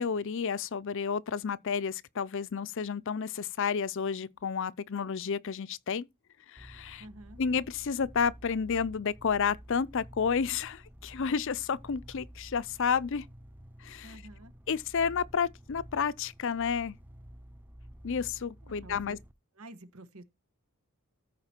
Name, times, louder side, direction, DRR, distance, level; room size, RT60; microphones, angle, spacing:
voice 1, 0.0-6.1 6.5-7.0 7.4-13.3 13.8-14.2 14.7-17.0 18.0-19.2, left 6 dB, 60° left, 0.5 m, -31 dB
sound 1, 6.6-19.3, equal, 10° right, 0.6 m, -51 dB
voice 2, 7.0-7.4 14.0-14.5 18.6-19.2 19.5-20.2, right 1 dB, 75° right, 1.3 m, -49 dB
14.0 x 4.9 x 4.4 m
head